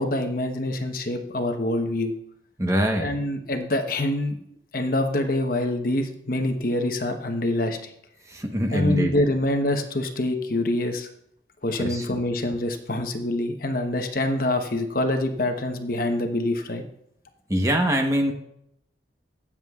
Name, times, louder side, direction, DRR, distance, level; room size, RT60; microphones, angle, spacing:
voice 1, 0.0-2.1 3.0-4.4 4.7-7.9 8.7-11.1 11.6-16.8, left 1 dB, 50° left, 5 dB, 1.0 m, -25 dB
voice 2, 2.6-3.1 8.3-9.1 11.8-12.1 17.5-18.3, equal, 15° right, 3 dB, 1.0 m, -23 dB
22.0 x 7.4 x 2.4 m, 0.75 s
head